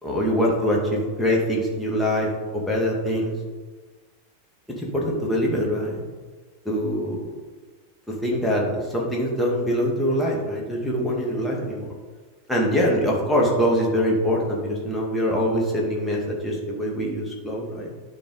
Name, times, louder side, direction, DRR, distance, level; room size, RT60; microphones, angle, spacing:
voice 1, 0.0-3.3 4.8-6.0 6.7-7.3 8.2-11.9 12.5-17.9, equal, 5° left, -3 dB, 2.1 m, -24 dB
11.0 x 4.7 x 4.1 m, 1.3 s
figure-of-eight pair, 90°, 0 cm